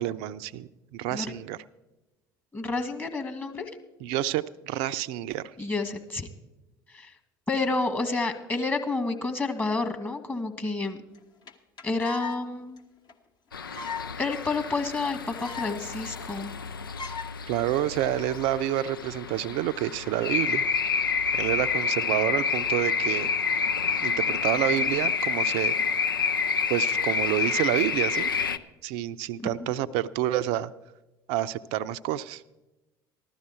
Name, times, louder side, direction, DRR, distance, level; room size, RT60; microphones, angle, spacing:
voice 1, 0.0-1.6 4.0-5.5 17.5-20.6 21.3-23.3 24.0-25.7 26.7-28.3 28.8-30.7 31.3-32.4, right 13 dB, 60° right, 15 dB, 0.5 m, -28 dB
voice 2, 2.5-3.7 5.6-6.3 6.9-7.1 7.5-11.0 11.8-12.8 14.2-16.5 29.4-29.7, left 3 dB, 15° left, 6 dB, 1.6 m, -29 dB
sound 1, 11.1-11.2 11.5-11.6 11.8-12.4 12.8-12.9 13.1-13.2 13.6-14.1 14.4-14.5 14.8-14.9 15.1-15.8 16.1-16.2 16.4-16.7 17.0-17.3 17.9-18.2, left 5 dB, 40° left, 1.3 m, -37 dB
sound 2, 13.5-28.6, left 6 dB, 90° left, 0.5 m, -28 dB
15.0 x 12.0 x 4.4 m, 1.0 s
figure-of-eight pair, 65°, 11 cm